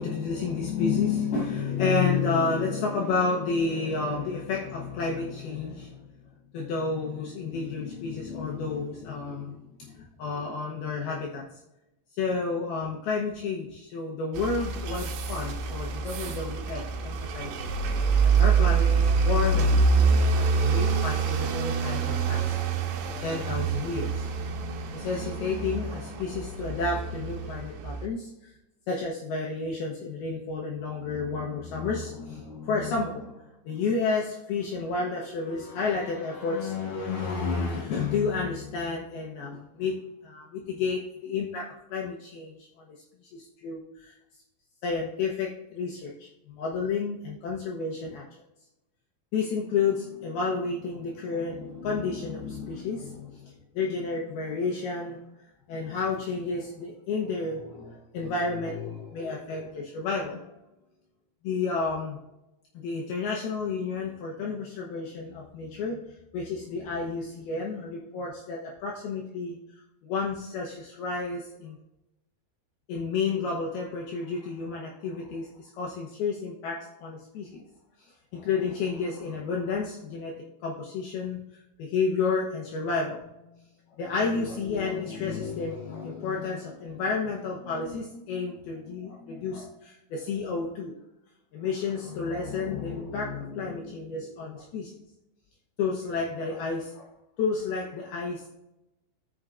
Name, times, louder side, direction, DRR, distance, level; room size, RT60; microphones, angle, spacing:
voice 1, 0.0-6.1 6.5-11.4 12.2-17.5 18.4-19.8 20.4-22.6 23.2-24.5 24.9-28.3 28.9-42.9 43.3-44.1 44.8-48.2 49.3-55.2 55.7-60.5 61.4-62.2 62.8-66.0 66.3-69.6 70.0-71.8 72.9-77.6 78.3-80.4 80.6-81.4 81.8-83.5 84.0-90.9 91.5-94.9 95.8-97.1 97.4-98.5, left 4 dB, 85° left, -2 dB, 2.1 m, -31 dB
sound 1, 14.3-28.1, right 4 dB, 75° right, 2.8 m, -26 dB
13.5 x 6.9 x 2.5 m, 0.93 s
omnidirectional pair, 5.8 m